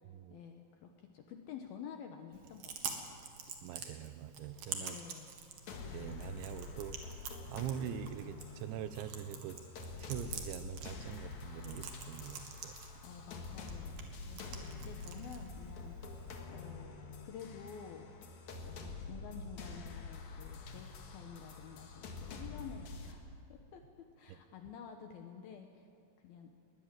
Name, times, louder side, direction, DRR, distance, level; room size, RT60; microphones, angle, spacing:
voice 1, 0.3-3.1 4.8-5.3 13.0-17.0 17.2-18.1 18.6-25.9 26.2-26.5, left 7 dB, 70° left, 4 dB, 2.3 m, -50 dB
Chewing mastication, 2.3-16.3, right 6 dB, 55° right, 3.1 m, -48 dB
voice 2, 3.6-5.0 5.9-7.0 7.5-9.6 10.0-12.7, right 10 dB, 80° right, 12 dB, 3.0 m, -43 dB
sound 1, 5.7-23.1, left 3 dB, 55° left, 2.4 m, -47 dB
21.0 x 20.0 x 7.5 m, 2.5 s
omnidirectional pair, 5.5 m